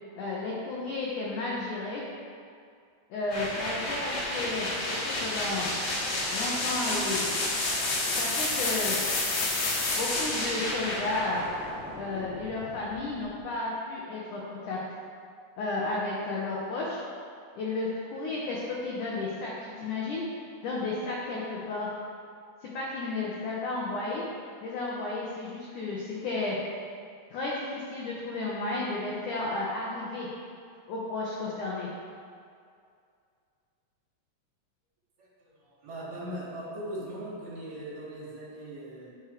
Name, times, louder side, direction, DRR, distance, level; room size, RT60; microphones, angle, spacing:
voice 1, 0.2-2.0 3.1-5.7 6.3-7.2 8.2-9.0 10.0-11.4 12.0-14.8 15.6-17.0 17.6-20.2 20.6-21.9 22.6-24.2 24.6-26.6 27.3-30.3 30.9-31.9, left 2 dB, 90° left, -5 dB, 1.7 m, -33 dB
sound 1, 3.3-13.1, left 2 dB, 65° left, 2.4 m, -30 dB
voice 2, 35.2-39.1, right 1 dB, 70° right, -7 dB, 4.3 m, -40 dB
12.5 x 6.3 x 3.2 m, 2.3 s
omnidirectional pair, 5.1 m